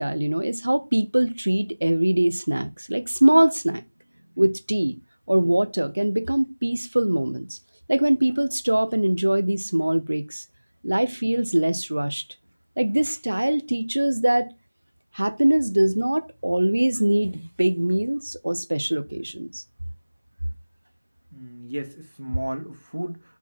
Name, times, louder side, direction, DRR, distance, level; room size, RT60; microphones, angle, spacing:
voice 1, 0.0-3.8 4.4-5.0 5.3-7.6 7.9-10.4 10.8-12.2 12.8-14.5 15.1-19.6, right 1 dB, 40° right, 0.7 m, -22 dB
voice 2, 21.3-23.4, right 1 dB, 90° right, 2.1 m, -34 dB
5.7 x 4.6 x 5.8 m
figure-of-eight pair, 180°, 0 cm